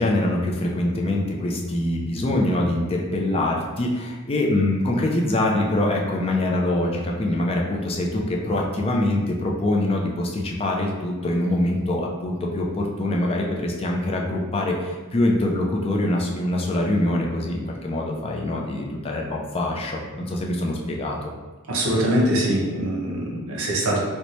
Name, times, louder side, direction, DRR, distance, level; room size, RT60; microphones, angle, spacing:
voice 1, 0.0-21.3, left 1 dB, 25° left, -1 dB, 0.4 m, -24 dB
voice 2, 21.7-24.0, right 1 dB, 75° right, -3 dB, 0.7 m, -23 dB
3.1 x 2.2 x 4.0 m, 1.3 s
head